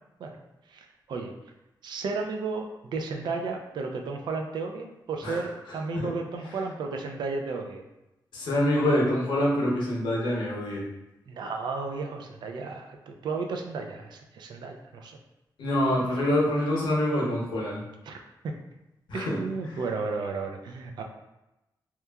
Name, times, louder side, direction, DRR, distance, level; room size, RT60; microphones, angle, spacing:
voice 1, 0.7-1.3 1.8-7.9 11.3-15.2 18.0-18.5 19.1-21.0, right 4 dB, 70° right, 3 dB, 0.3 m, -33 dB
voice 2, 8.3-10.8 15.6-17.8 19.1-19.4, left 1 dB, 85° left, -4 dB, 0.7 m, -25 dB
2.9 x 2.3 x 2.2 m, 0.95 s
wide cardioid pair, 155°, 8 cm